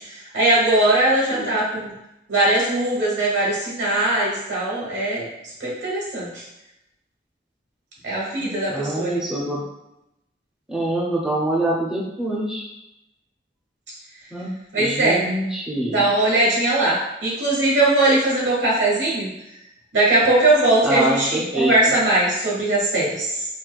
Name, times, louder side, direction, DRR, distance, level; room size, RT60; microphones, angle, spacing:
voice 1, 0.1-1.9 2.3-5.3 5.6-6.4 8.0-9.2 14.7-15.2 15.9-19.3 19.9-23.5, right 2 dB, 90° right, -5 dB, 1.3 m, -20 dB
voice 2, 8.4-9.6 10.7-12.6 14.3-14.5 14.8-16.1 20.8-21.7, right 1 dB, 5° right, -5 dB, 0.4 m, -25 dB
4.3 x 2.2 x 2.3 m, 0.88 s
head